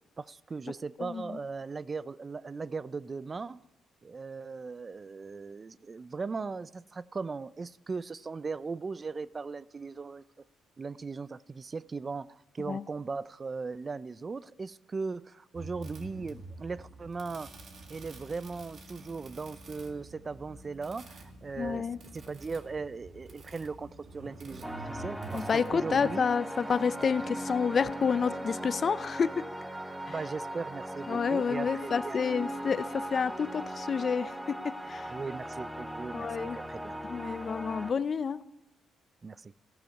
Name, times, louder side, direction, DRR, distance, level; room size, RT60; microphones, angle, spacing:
voice 1, 0.2-3.6 4.0-10.2 10.8-17.5 17.9-21.9 22.1-26.3 30.1-32.4 35.1-37.0 39.2-39.5, right 4 dB, 30° right, 0.3 m, -38 dB
sound 1, 15.5-26.1, right 2 dB, 55° right, 2.0 m, -47 dB
voice 2, 21.6-22.0 25.3-29.4 31.1-35.1 36.1-36.6 37.1-38.4, left 6 dB, 45° left, 0.5 m, -29 dB
sound 2, 24.6-37.9, right 1 dB, 5° right, 0.9 m, -39 dB
14.0 x 12.0 x 5.3 m
cardioid pair, 90°, 0 cm